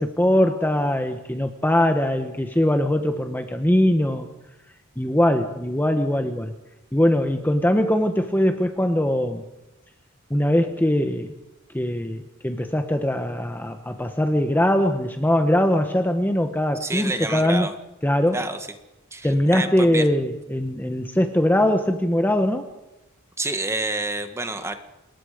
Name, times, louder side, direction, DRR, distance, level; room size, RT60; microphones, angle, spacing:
voice 1, 0.0-4.3 5.0-6.5 6.9-9.4 10.3-11.3 11.7-17.7 18.0-18.4 19.2-22.7, left 1 dB, 10° left, 6 dB, 1.3 m, -21 dB
voice 2, 16.8-17.7 18.3-18.6 19.1-20.0 23.4-24.7, right 2 dB, 15° right, 7 dB, 1.7 m, -28 dB
27.0 x 21.5 x 5.2 m, 0.98 s
head